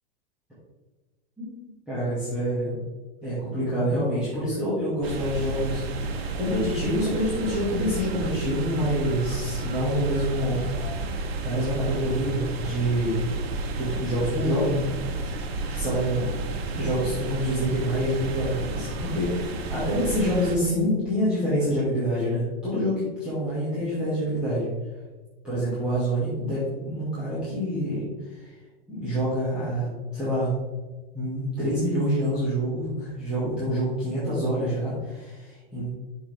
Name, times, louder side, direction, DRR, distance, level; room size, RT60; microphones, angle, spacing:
voice 1, 1.4-2.8 3.2-10.8 11.1-13.3 13.7-15.4 15.7-16.2 16.7-24.7 25.4-28.5 28.9-30.5 31.1-35.9, equal, 5° right, -13 dB, 2.1 m, -27 dB
sound 1, 5.0-20.6, right 3 dB, 85° right, 1.3 m, -31 dB
6.7 x 5.7 x 3.5 m, 1.2 s
supercardioid pair, 160°, 30 cm